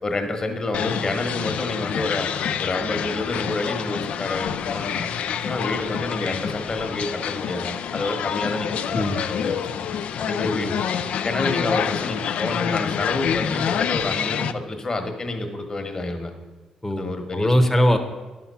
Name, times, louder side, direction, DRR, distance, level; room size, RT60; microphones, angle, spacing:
voice 1, 0.0-2.3 2.6-5.1 5.4-10.7 11.2-16.3 16.9-17.5, left 2 dB, 35° left, 5 dB, 1.4 m, -28 dB
sound 1, 0.7-14.5, left 8 dB, 75° left, 0.4 m, -27 dB
voice 2, 8.9-9.3 10.4-10.8 16.8-17.1 17.3-18.0, equal, 10° left, 4 dB, 0.9 m, -21 dB
11.0 x 5.9 x 5.6 m, 1.2 s
cardioid pair, 105°, 2 cm